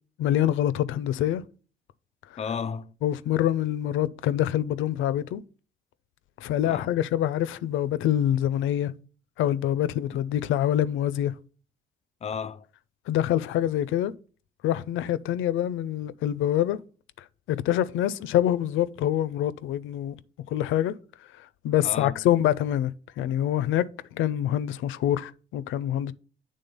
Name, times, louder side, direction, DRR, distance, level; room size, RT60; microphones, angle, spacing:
voice 1, 0.2-1.4 3.0-5.4 6.4-8.9 9.4-11.3 13.1-14.1 14.6-16.8 17.5-20.2 20.5-20.9 21.6-22.9 23.2-26.1, left 11 dB, 85° left, 0.5 m, -25 dB
voice 2, 2.4-2.9 6.6-6.9 10.1-10.2 12.2-12.7 21.8-22.2, left 6 dB, 35° left, 0.4 m, -33 dB
9.2 x 3.7 x 5.3 m
cardioid pair, 90°, 20 cm